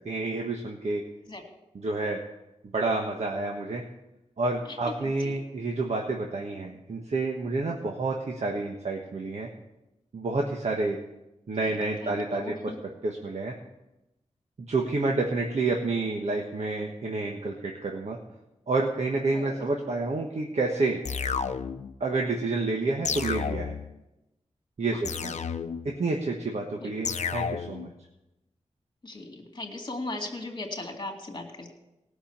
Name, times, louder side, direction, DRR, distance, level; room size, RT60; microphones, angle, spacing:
voice 1, 0.0-1.0 1.8-2.2 2.7-3.8 4.4-9.5 10.1-11.0 11.5-12.5 13.0-13.5 14.7-18.2 18.7-21.0 22.0-23.8 24.8-25.4 25.8-27.9, right 3 dB, 65° right, 1 dB, 1.4 m, -29 dB
voice 2, 4.6-5.4 11.6-12.8 19.3-19.7 24.9-25.0 26.8-26.9 29.0-31.7, left 2 dB, 35° left, 3 dB, 2.4 m, -38 dB
sound 1, 21.0-21.9 23.0-23.9 25.0-25.9 27.0-27.9, left 6 dB, 70° left, 0.6 m, -31 dB
17.5 x 6.3 x 7.3 m, 0.95 s
wide cardioid pair, 80°, 12 cm